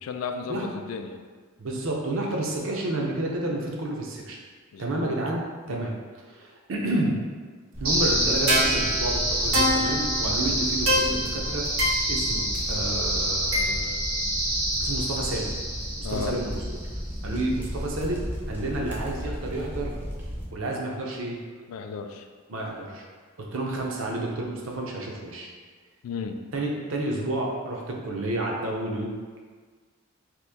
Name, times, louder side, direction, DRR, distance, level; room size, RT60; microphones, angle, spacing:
voice 1, 0.0-1.1 4.7-5.2 5.7-5.9 16.0-16.4 21.7-22.3 26.0-26.4, left 5 dB, 75° left, 6 dB, 0.3 m, -34 dB
voice 2, 1.6-4.4 4.8-6.0 6.3-7.2 7.8-11.6 12.1-14.1 14.8-15.5 16.1-16.8 17.2-19.9 20.5-21.4 22.5-23.0 23.4-25.5 26.5-29.1, right 1 dB, 65° right, -1 dB, 0.6 m, -30 dB
sound 1, 7.7-20.5, equal, 10° right, 0.4 m, -35 dB
sound 2, 7.8-16.9, equal, 80° right, 1.1 m, -26 dB
2.9 x 2.5 x 3.4 m, 1.5 s
head